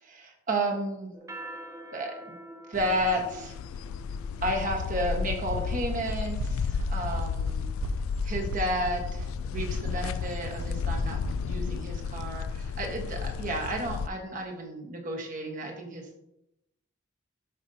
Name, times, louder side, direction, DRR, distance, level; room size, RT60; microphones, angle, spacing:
voice 1, 0.0-1.1 1.9-2.2 2.7-3.5 4.4-7.6 8.2-16.2, right 1 dB, 40° right, 0 dB, 1.4 m, -32 dB
sound 1, 1.1-5.9, right 1 dB, 15° right, 0.5 m, -46 dB
sound 2, 2.7-14.1, left 6 dB, 85° left, 0.3 m, -33 dB
sound 3, 6.1-11.3, right 3 dB, 80° right, 0.5 m, -36 dB
12.5 x 5.2 x 2.8 m, 0.87 s
head